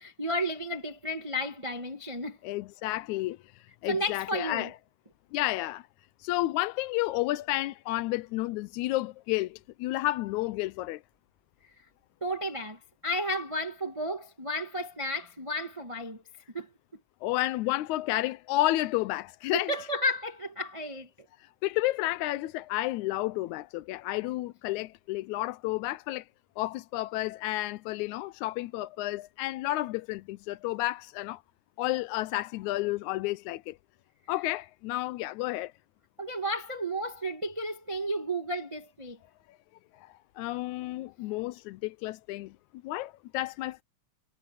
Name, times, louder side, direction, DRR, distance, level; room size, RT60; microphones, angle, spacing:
voice 1, 0.0-2.4 3.9-4.7 12.2-16.2 16.5-16.7 19.7-21.1 36.2-39.2, equal, 15° right, 1.0 m, -32 dB
voice 2, 2.4-4.7 5.3-5.9 6.2-11.0 17.2-19.8 21.4-26.3 26.6-31.4 31.8-33.8 34.3-35.7 40.0-42.5 42.8-43.8, left 17 dB, 85° left, 2.0 m, -31 dB
omnidirectional pair, 3.4 m